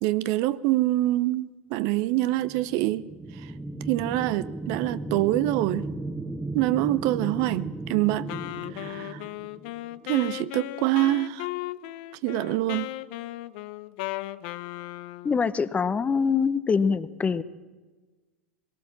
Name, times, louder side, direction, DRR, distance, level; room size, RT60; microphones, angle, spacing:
voice 1, 0.0-3.0 3.9-5.9 6.5-8.3 8.7-9.2 10.0-11.5 12.2-13.0, right 16 dB, 50° right, 0.7 m, -25 dB
sound 1, 2.4-10.0, right 2 dB, 10° right, 0.9 m, -36 dB
Wind instrument woodwind instrument, 8.3-15.4, left 17 dB, 55° left, 0.7 m, -36 dB
voice 2, 15.2-17.4, left 5 dB, 20° left, 0.9 m, -24 dB
21.0 x 18.5 x 7.5 m
figure-of-eight pair, 85°, 7 cm